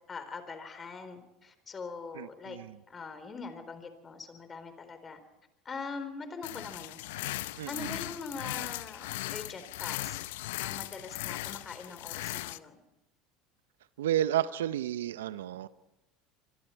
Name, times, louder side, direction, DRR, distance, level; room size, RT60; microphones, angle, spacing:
voice 1, 0.1-2.6 2.9-5.2 5.6-7.0 7.7-12.8, left 4 dB, 30° left, 10 dB, 4.1 m, -42 dB
voice 2, 2.2-2.7 7.6-7.7 14.0-15.7, right 11 dB, 80° right, 16 dB, 0.7 m, -31 dB
sound 1, 6.4-12.6, left 18 dB, 75° left, 0.6 m, -38 dB
25.0 x 23.5 x 4.6 m, 0.90 s
hypercardioid pair, 80°, 0 cm